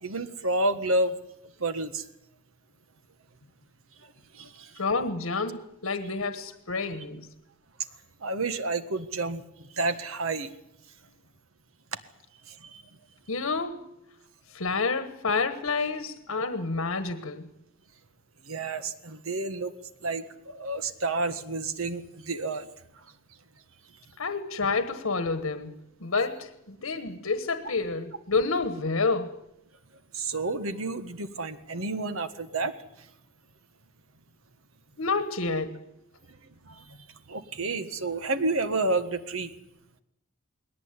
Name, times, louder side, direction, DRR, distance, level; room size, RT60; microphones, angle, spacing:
voice 1, 0.0-1.1 1.6-2.0 4.4-4.7 8.2-9.4 9.8-10.5 12.6-12.8 16.4-16.5 18.5-19.7 20.0-22.7 30.1-32.7 36.7-36.8 37.3-39.5, right 2 dB, 75° right, 1.6 m, -30 dB
voice 2, 4.8-7.3 13.3-13.9 14.5-17.5 24.2-25.7 26.0-29.4 35.0-35.8, left 4 dB, 80° left, 1.4 m, -29 dB
20.5 x 18.0 x 9.8 m
head